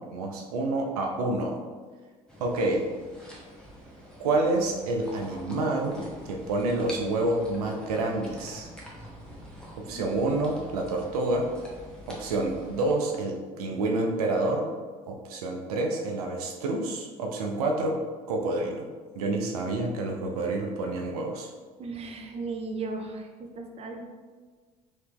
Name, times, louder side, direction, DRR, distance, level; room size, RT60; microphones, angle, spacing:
voice 1, 0.0-1.6 2.4-2.9 4.2-6.0 6.3-8.7 9.8-11.5 12.1-14.7 15.1-18.0 18.3-18.8 19.2-21.5, right 2 dB, 80° right, 1 dB, 0.5 m, -28 dB
sound 1, 2.3-12.9, equal, 5° left, 1.0 m, -45 dB
voice 2, 21.8-24.0, right 3 dB, 30° right, 3 dB, 0.5 m, -36 dB
3.2 x 2.8 x 3.4 m, 1.5 s
hypercardioid pair, 65°, 19 cm